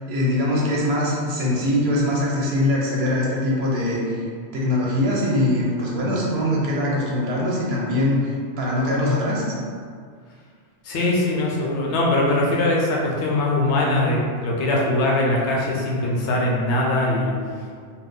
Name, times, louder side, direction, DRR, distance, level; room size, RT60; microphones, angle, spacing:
voice 1, 0.1-4.2 4.5-9.4, left 1 dB, 70° right, -4 dB, 0.9 m, -22 dB
voice 2, 10.8-17.4, left 2 dB, 80° left, -3 dB, 0.9 m, -21 dB
2.6 x 2.3 x 3.6 m, 2.1 s
omnidirectional pair, 1.2 m